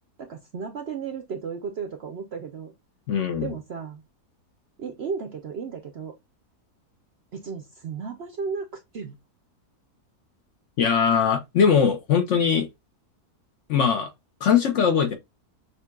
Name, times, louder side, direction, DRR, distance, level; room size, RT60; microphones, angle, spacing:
voice 1, 0.2-2.7 3.4-4.0 4.8-6.1 7.3-8.7 8.9-9.2, right 5 dB, 60° right, 0.7 m, -34 dB
voice 2, 3.1-3.5 10.8-12.7 13.7-14.1 14.4-15.1, left 7 dB, 60° left, 1.0 m, -21 dB
6.6 x 2.4 x 2.3 m
omnidirectional pair, 1.6 m